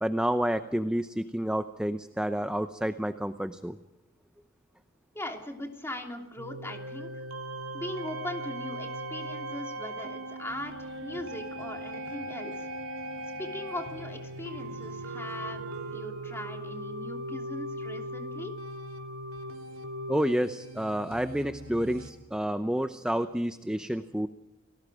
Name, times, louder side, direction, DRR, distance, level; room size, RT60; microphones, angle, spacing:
voice 1, 0.0-3.8 20.1-24.3, equal, 5° right, 9 dB, 0.7 m, -29 dB
voice 2, 5.1-7.2 7.7-12.7 13.4-15.6 15.9-18.5, left 1 dB, 10° left, 2 dB, 3.0 m, -39 dB
sound 1, 6.4-22.1, right 1 dB, 70° right, 3.2 m, -39 dB
sound 2, 10.5-16.0, equal, 55° right, 7.8 m, -54 dB
30.0 x 19.5 x 5.0 m, 0.98 s
head